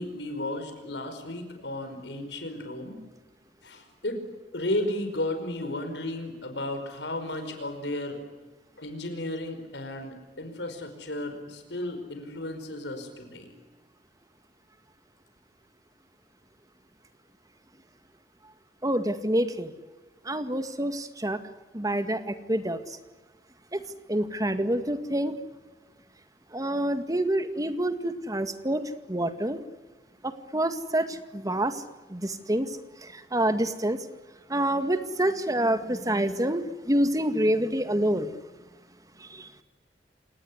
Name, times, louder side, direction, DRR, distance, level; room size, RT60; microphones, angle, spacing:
voice 1, 0.0-3.0 3.6-4.2 4.5-8.2 8.8-13.5, left 1 dB, 80° left, 7 dB, 5.1 m, -34 dB
voice 2, 18.8-19.7 20.3-21.4 21.7-22.8 23.7-23.8 24.1-25.3 26.5-28.8 29.1-29.6 30.2-31.8 32.1-32.7 33.0-34.0 34.5-38.3 39.2-39.5, right 1 dB, 20° right, 10 dB, 2.0 m, -27 dB
28.0 x 19.0 x 9.8 m, 1.3 s
head